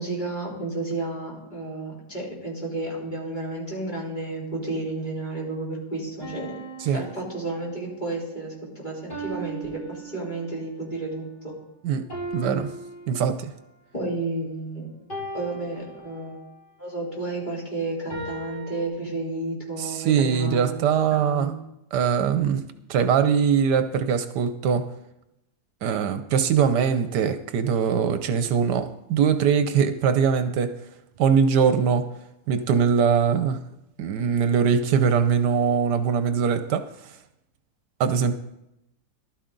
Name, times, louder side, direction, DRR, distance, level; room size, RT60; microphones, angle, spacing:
voice 1, 0.0-11.6 13.9-14.9 15.3-16.4 16.8-20.8 21.1-21.6, right 2 dB, 25° left, 4.0 m, -32 dB
sound 1, 6.2-8.0 9.1-10.7 12.1-13.8 15.1-16.6 18.1-18.9, right 3 dB, 80° left, 6.3 m, -38 dB
voice 2, 11.8-12.7 13.1-13.5 19.8-21.5 21.9-22.6 22.9-24.9 25.8-30.8 31.2-32.1 32.5-33.7 34.0-37.1 38.0-38.4, right 7 dB, 75° right, 1.3 m, -22 dB
14.5 x 12.5 x 3.9 m
omnidirectional pair, 1.8 m